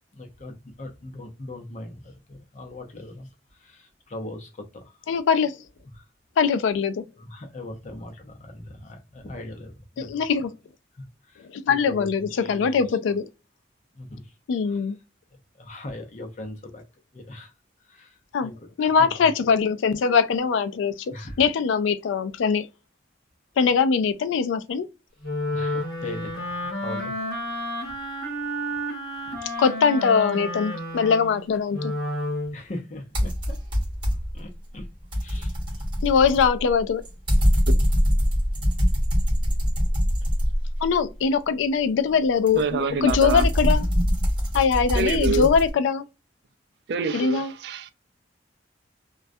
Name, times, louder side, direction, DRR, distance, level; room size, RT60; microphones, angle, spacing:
voice 1, 0.1-3.3 3.6-4.9 5.9-6.0 7.2-10.2 11.3-12.9 14.0-14.2 14.7-14.8 15.6-16.8 17.1-17.5 17.9-18.5 19.0-19.1 21.1-21.4 25.5-26.5 26.8-27.2 29.5-29.6 32.5-33.6 34.3-34.9 35.2-35.5, left 1 dB, 40° left, 0.6 m, -39 dB
voice 2, 5.1-5.6 6.4-7.0 10.0-10.5 11.5-13.3 14.5-15.0 18.3-18.5 18.8-22.7 23.6-24.9 29.6-31.9 36.0-37.0 40.8-43.9 44.5-46.0 47.1-47.5, left 6 dB, 85° left, 0.3 m, -22 dB
Wind instrument woodwind instrument, 25.2-32.6, equal, 55° left, 1.1 m, -30 dB
sound 1, 33.1-34.4 34.8-41.0 42.5-45.7, equal, 25° right, 1.0 m, -23 dB
voice 3, 42.5-43.4 44.9-45.5 46.9-47.9, right 4 dB, 60° right, 0.3 m, -26 dB
2.2 x 2.1 x 2.6 m
head